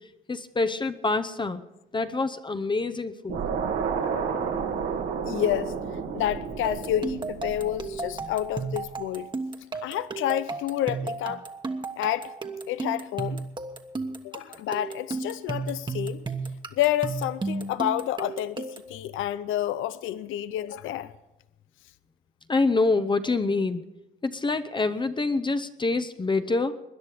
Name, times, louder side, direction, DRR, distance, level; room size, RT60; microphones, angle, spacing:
voice 1, 0.3-1.6 1.9-3.5 22.5-23.8 24.2-26.7, left 3 dB, 25° left, 0.7 m, -26 dB
sound 1, 3.3-8.6, right 6 dB, 80° right, 2.0 m, -31 dB
voice 2, 5.2-5.7 6.1-9.3 9.8-11.4 12.0-12.3 12.7-13.4 14.2-16.2 16.7-21.1, left 12 dB, 80° left, 0.5 m, -29 dB
sound 2, 6.6-19.0, right 3 dB, 25° right, 1.3 m, -34 dB
20.5 x 10.5 x 5.0 m
cardioid pair, 90°, 20 cm